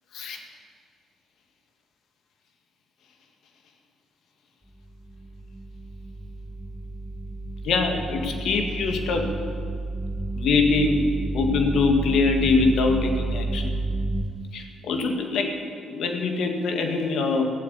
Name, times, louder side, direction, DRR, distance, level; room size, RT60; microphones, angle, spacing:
sound 1, 4.8-14.2, right 2 dB, 10° right, 1.3 m, -31 dB
voice 1, 7.6-9.3 10.4-11.0 11.3-13.7 14.5-15.5 15.8-17.4, left 4 dB, 75° left, 4 dB, 1.9 m, -23 dB
15.0 x 8.1 x 9.3 m, 2.3 s
cardioid pair, 90°, 0 cm